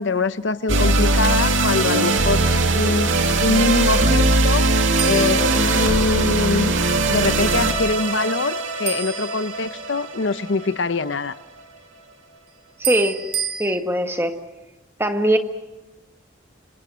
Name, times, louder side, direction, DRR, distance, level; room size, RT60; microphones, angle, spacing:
voice 1, 0.0-2.4 2.7-4.6 5.1-11.3, left 3 dB, 70° left, 13 dB, 0.8 m, -23 dB
sound 1, 0.7-11.1, right 2 dB, 85° right, 2.4 m, -20 dB
sound 2, 5.0-6.3 8.9-10.1 12.8-13.6, right 9 dB, 55° right, 4.3 m, -31 dB
voice 2, 12.8-13.2 13.6-14.4 15.0-15.4, right 1 dB, 10° right, 6 dB, 1.6 m, -20 dB
27.0 x 26.5 x 6.3 m, 1.1 s
head